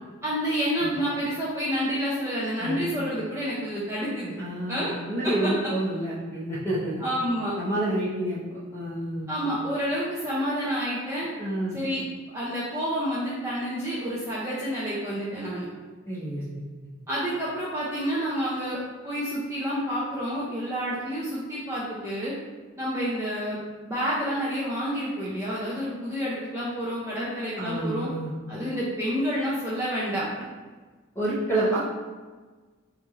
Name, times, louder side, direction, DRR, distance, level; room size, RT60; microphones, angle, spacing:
voice 1, 0.2-4.4 4.7-4.9 5.2-5.5 7.0-7.5 9.3-11.3 11.7-12.0 12.3-15.7 17.1-18.8 19.0-22.3 22.8-23.6 23.8-28.1 28.5-30.2 31.6-31.8, equal, 15° right, -8 dB, 0.4 m, -29 dB
voice 2, 4.4-7.0 7.6-9.3 11.4-11.8 16.1-16.7 27.6-28.4 31.1-31.8, right 1 dB, 10° left, -7 dB, 0.8 m, -29 dB
3.1 x 2.5 x 3.6 m, 1.3 s
head